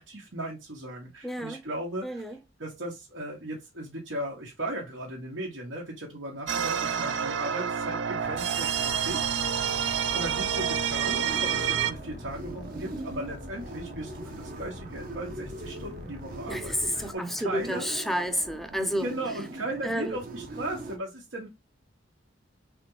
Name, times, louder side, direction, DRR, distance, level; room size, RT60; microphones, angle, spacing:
voice 1, 0.0-2.2 2.6-9.2 9.7-18.0 19.0-21.5, right 1 dB, 85° right, 1.5 m, -37 dB
voice 2, 1.2-1.7 2.0-2.4 9.7-10.1 16.5-19.1 19.8-20.2, equal, ahead, 0.6 m, -31 dB
sound 1, 6.5-11.9, right 7 dB, 65° right, 0.5 m, -28 dB
sound 2, 8.2-17.1, left 3 dB, 60° left, 0.6 m, -44 dB
sound 3, 10.9-21.0, right 2 dB, 50° right, 0.8 m, -41 dB
4.2 x 3.7 x 3.1 m
head